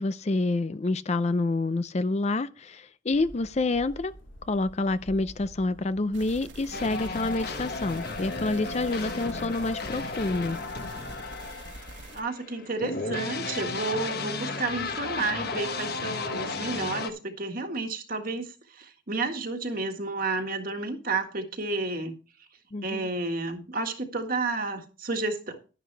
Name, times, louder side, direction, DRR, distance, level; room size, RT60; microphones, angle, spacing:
voice 1, 0.0-4.1 4.5-10.6 22.7-23.1, left 2 dB, 35° left, 0.5 m, -28 dB
sound 1, 3.1-9.4, right 1 dB, 80° left, 2.8 m, -50 dB
sound 2, 6.1-12.2, right 2 dB, 65° right, 1.6 m, -45 dB
sound 3, 6.7-17.1, left 3 dB, 55° left, 1.3 m, -34 dB
voice 2, 12.1-18.5 18.7-22.1 22.8-25.6, right 3 dB, 45° right, 1.7 m, -31 dB
11.5 x 11.0 x 3.3 m
head